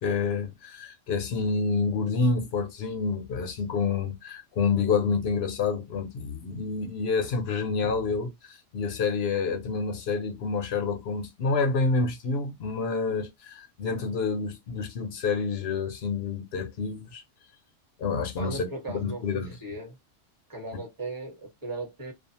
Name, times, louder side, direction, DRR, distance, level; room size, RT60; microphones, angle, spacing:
voice 1, 0.0-17.2 18.0-19.5, left 4 dB, 60° left, 0.8 m, -28 dB
voice 2, 18.4-20.0 20.5-22.1, right 2 dB, 15° right, 1.1 m, -37 dB
2.4 x 2.4 x 2.7 m
omnidirectional pair, 1.3 m